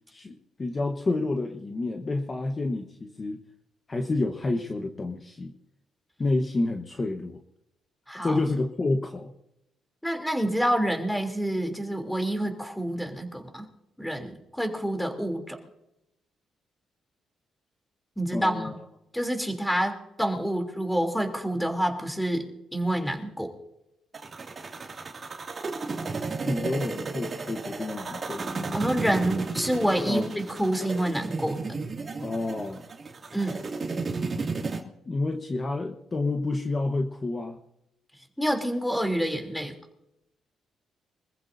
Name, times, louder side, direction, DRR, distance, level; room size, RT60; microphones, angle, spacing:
voice 1, 0.1-3.4 3.9-5.5 6.2-7.4 8.2-9.3 18.3-18.8 26.4-28.5 30.1-30.3 32.2-32.8 34.7-34.8 35.0-37.6, left 2 dB, 30° left, 3 dB, 1.2 m, -29 dB
voice 2, 8.1-8.4 10.0-13.7 14.0-15.6 18.2-18.8 19.1-22.4 22.7-23.5 28.7-31.6 33.3-33.6 38.4-39.7, right 1 dB, 5° left, 4 dB, 3.2 m, -27 dB
sound 1, 24.1-34.8, right 4 dB, 40° right, 2.5 m, -33 dB
25.5 x 15.0 x 2.7 m, 0.86 s
cardioid pair, 90°, 0 cm